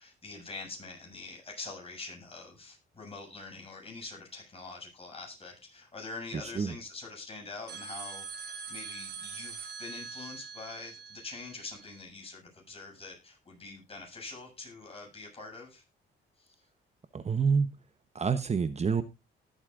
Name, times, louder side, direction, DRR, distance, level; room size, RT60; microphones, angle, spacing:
voice 1, 0.0-8.2 8.7-15.8 16.4-16.5, left 3 dB, 30° left, 1 dB, 7.4 m, -44 dB
voice 2, 6.3-6.8 17.1-17.7 18.1-19.0, right 5 dB, 35° right, 12 dB, 0.9 m, -28 dB
sound 1, 7.7-12.0, right 5 dB, 55° right, 3.3 m, -43 dB
19.0 x 8.2 x 2.5 m, 0.25 s
cardioid pair, 90°, 20 cm